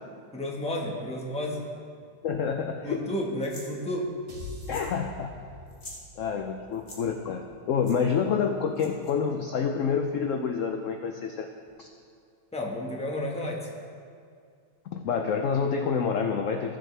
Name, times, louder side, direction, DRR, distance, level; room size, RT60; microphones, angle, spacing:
voice 1, 0.3-1.6 2.8-4.1 12.5-13.7, left 1 dB, 5° left, -2 dB, 1.0 m, -31 dB
voice 2, 2.2-3.0 4.7-5.4 6.2-11.5 11.8-11.9 14.9-16.8, left 6 dB, 70° left, 4 dB, 0.7 m, -28 dB
sound 1, 3.4-3.7 4.6-5.0 5.2-5.3 5.7-6.0 6.7-7.0 7.8-8.0 8.8-9.1, left 1 dB, 30° left, 1.7 m, -45 dB
sound 2, 4.3-8.6, left 1 dB, 75° right, 2.3 m, -45 dB
15.5 x 7.3 x 3.3 m, 2.2 s
omnidirectional pair, 1.9 m